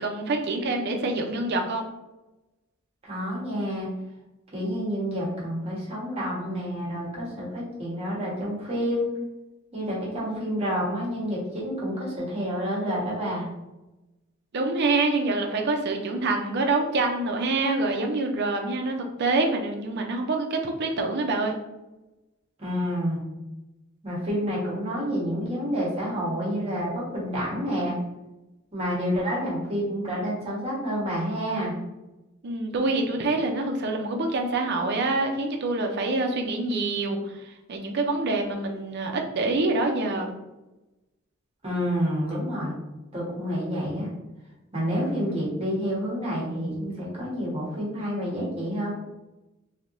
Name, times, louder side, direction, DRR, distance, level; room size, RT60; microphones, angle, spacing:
voice 1, 0.0-1.9 14.5-21.5 32.4-40.3, right 2 dB, 55° right, 2 dB, 0.5 m, -26 dB
voice 2, 3.0-3.9 4.5-9.1 9.7-13.5 22.6-23.2 24.0-28.0 28.7-31.8 41.6-42.8 43.1-44.1 44.7-48.9, equal, 30° right, -6 dB, 1.2 m, -29 dB
3.3 x 2.8 x 2.6 m, 1.0 s
head